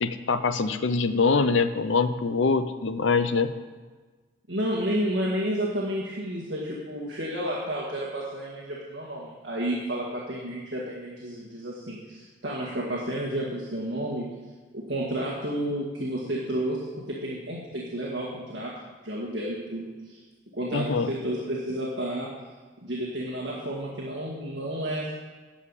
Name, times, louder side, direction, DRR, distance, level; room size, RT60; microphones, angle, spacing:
voice 1, 0.0-3.5 20.7-21.1, left 4 dB, 75° left, 11 dB, 0.7 m, -24 dB
voice 2, 4.5-14.3 14.7-18.7 19.0-20.2 20.5-22.3 22.8-25.1, right 1 dB, 60° right, -4 dB, 2.0 m, -31 dB
13.5 x 5.7 x 8.3 m, 1.3 s
head